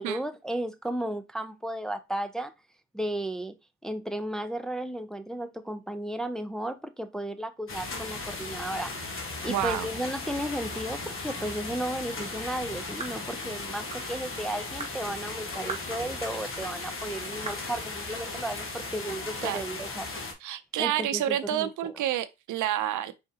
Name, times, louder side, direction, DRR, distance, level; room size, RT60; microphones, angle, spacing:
voice 1, 0.0-2.5 2.9-3.6 3.8-8.9 9.4-20.1 20.8-21.9, right 1 dB, ahead, 0.4 m, -34 dB
sound 1, 7.7-20.3, left 3 dB, 45° left, 1.3 m, -37 dB
voice 2, 9.5-9.9 19.4-19.6 20.4-23.1, right 12 dB, 80° right, 0.6 m, -29 dB
sound 2, 13.0-13.2 13.9-14.1 14.8-15.0 15.7-15.9 16.6-16.7 17.5-17.7, right 4 dB, 20° right, 1.1 m, -38 dB
4.7 x 3.5 x 2.8 m
cardioid pair, 90°, 30 cm